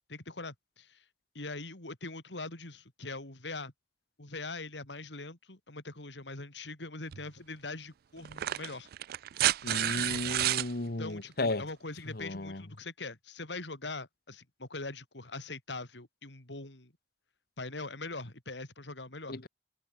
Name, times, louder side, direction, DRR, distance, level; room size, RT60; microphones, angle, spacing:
voice 1, 0.1-1.0 1.3-3.7 4.2-8.9 11.0-16.9 17.6-19.4, left 3 dB, 85° left, 3.7 m, -42 dB
sound 1, 7.1-7.2 8.2-10.7 12.2-12.3, right 13 dB, 60° right, 0.3 m, -30 dB
voice 2, 9.6-11.6 12.1-12.6 19.3-19.5, left 2 dB, 60° left, 1.5 m, -34 dB
head